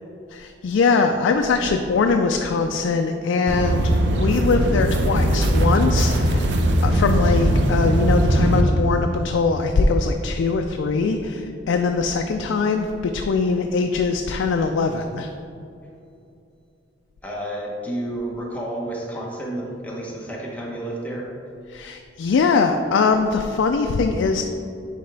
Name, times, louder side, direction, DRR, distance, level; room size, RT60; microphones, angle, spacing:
voice 1, 0.3-6.5 6.8-15.3 21.7-24.4, left 4 dB, 90° left, 5 dB, 0.3 m, -22 dB
sound 1, 3.5-8.6, right 1 dB, 65° right, 0.5 m, -19 dB
voice 2, 17.2-21.3, right 1 dB, 10° left, -3 dB, 0.8 m, -30 dB
9.3 x 3.4 x 3.3 m, 2.6 s
head